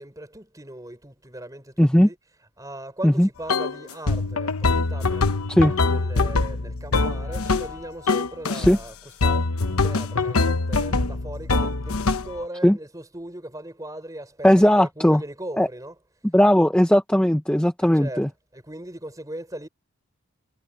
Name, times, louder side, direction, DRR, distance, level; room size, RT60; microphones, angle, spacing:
voice 1, 0.0-16.0 17.8-19.7, right 1 dB, 15° right, 4.5 m, -39 dB
voice 2, 1.8-2.1 3.0-3.3 5.5-5.7 8.5-8.8 12.6-12.8 14.4-15.2 15.6-15.7 16.3-18.3, equal, 5° left, 0.6 m, -17 dB
sound 1, 3.5-3.8 4.1-7.8 8.1-8.8 9.2-12.4, left 3 dB, 75° left, 1.1 m, -23 dB
head